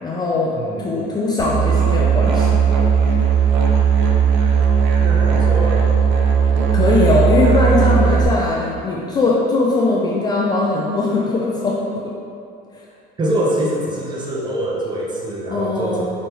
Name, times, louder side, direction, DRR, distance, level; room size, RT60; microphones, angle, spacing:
voice 1, 0.0-2.5 6.7-11.9 15.5-16.0, left 3 dB, 20° left, -4 dB, 0.3 m, -20 dB
voice 2, 0.5-1.1 5.0-5.9 13.2-16.0, right 1 dB, 25° right, -4 dB, 0.8 m, -24 dB
Musical instrument, 1.4-8.2, right 6 dB, 85° right, 0.6 m, -16 dB
5.2 x 3.1 x 3.0 m, 2.5 s
cardioid pair, 145°, 19 cm